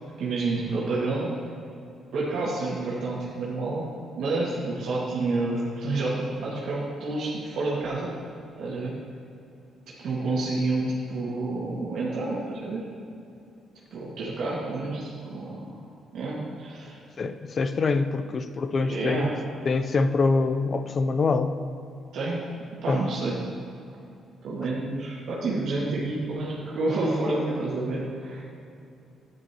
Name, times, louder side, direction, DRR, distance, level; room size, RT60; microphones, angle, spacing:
voice 1, 0.2-1.3 2.1-3.8 4.2-8.1 8.6-8.9 9.9-12.8 13.9-15.8 16.1-17.0 18.9-19.4 22.1-22.4 22.8-23.4 24.4-28.4, right 2 dB, 75° right, -7 dB, 2.0 m, -29 dB
voice 2, 17.2-19.3 19.6-21.5 22.9-23.1, left 4 dB, 45° left, 10 dB, 0.6 m, -25 dB
11.0 x 9.9 x 3.0 m, 2.6 s
cardioid pair, 90°, 0 cm